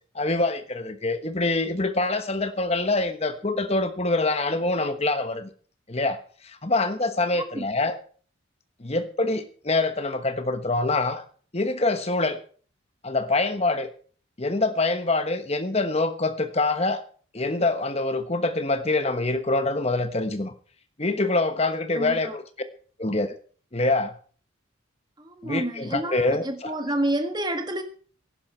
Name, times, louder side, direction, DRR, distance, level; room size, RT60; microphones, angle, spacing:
voice 1, 0.1-5.5 5.9-8.0 8.8-11.2 11.5-12.4 13.0-13.9 14.4-17.0 17.3-20.5 21.0-22.4 23.0-23.3 23.7-24.1 25.4-26.7, left 2 dB, 30° left, 1.2 m, -25 dB
voice 2, 7.3-7.7 21.9-22.4 25.2-27.8, right 1 dB, 20° right, 1.7 m, -29 dB
17.0 x 10.5 x 4.5 m
head